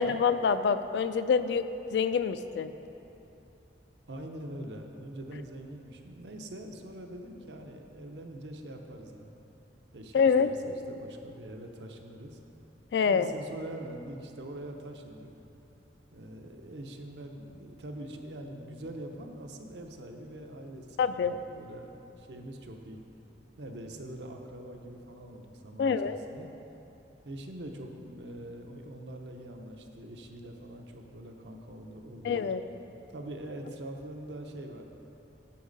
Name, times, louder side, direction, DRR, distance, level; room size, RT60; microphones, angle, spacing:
voice 1, 0.0-1.6 1.9-2.7 10.1-10.5 12.9-13.3 21.0-21.4 25.8-26.2 32.2-32.6, left 6 dB, 70° left, 12 dB, 0.3 m, -26 dB
voice 2, 4.1-9.3 9.9-12.4 13.0-15.3 16.1-23.0 23.6-26.5 27.2-32.5 33.1-34.8, right 1 dB, 75° right, 3 dB, 0.7 m, -43 dB
8.4 x 7.3 x 3.9 m, 3.0 s
head